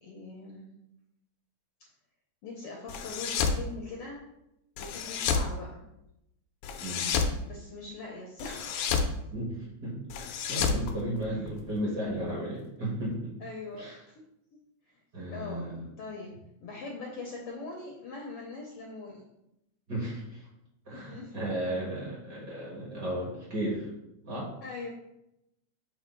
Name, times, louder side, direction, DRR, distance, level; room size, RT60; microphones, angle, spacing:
voice 1, 0.0-0.7 2.4-4.3 4.8-5.9 7.4-9.0 13.4-14.2 14.9-15.0 15.3-16.3 16.6-19.2 20.9-21.3 24.6-24.9, left 3 dB, 65° left, -1 dB, 1.5 m, -42 dB
sound 1, 2.9-3.6 4.8-5.5 6.6-7.4 8.4-9.1 10.1-11.6, left 5 dB, 85° left, 2.1 m, -30 dB
voice 2, 9.3-13.3 13.7-14.0 15.1-15.9 19.9-20.5 20.9-23.9 24.2-24.5, right 1 dB, 40° right, -4 dB, 1.9 m, -34 dB
7.2 x 3.4 x 4.4 m, 0.85 s
omnidirectional pair, 3.4 m